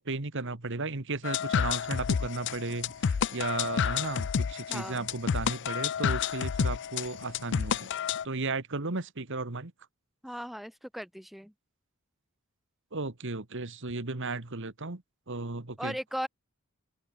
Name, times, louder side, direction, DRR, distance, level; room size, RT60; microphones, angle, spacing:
voice 1, 0.0-7.9 8.2-9.7 12.9-15.0 15.3-16.0, right 3 dB, 60° right, 1.7 m, -35 dB
sound 1, 1.2-8.2, left 7 dB, 55° left, 0.4 m, -30 dB
voice 2, 4.7-5.1 10.2-11.5 15.8-16.3, equal, ahead, 1.7 m, -37 dB
open air
head